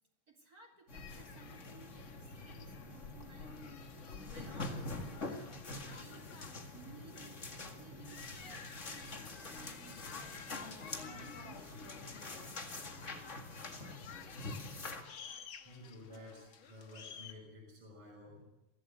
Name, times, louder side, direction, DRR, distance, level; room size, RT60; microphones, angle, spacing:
voice 1, 0.3-3.8 4.3-7.5 7.8-12.0, right 4 dB, 30° right, 4 dB, 3.2 m, -58 dB
sound 1, 0.9-17.3, left 7 dB, 50° left, 1.9 m, -54 dB
sound 2, 0.9-15.0, left 2 dB, 30° left, 1.9 m, -45 dB
voice 2, 15.7-18.4, left 1 dB, 50° right, 0 dB, 7.1 m, -53 dB
24.0 x 16.0 x 8.2 m, 0.97 s
omnidirectional pair, 3.4 m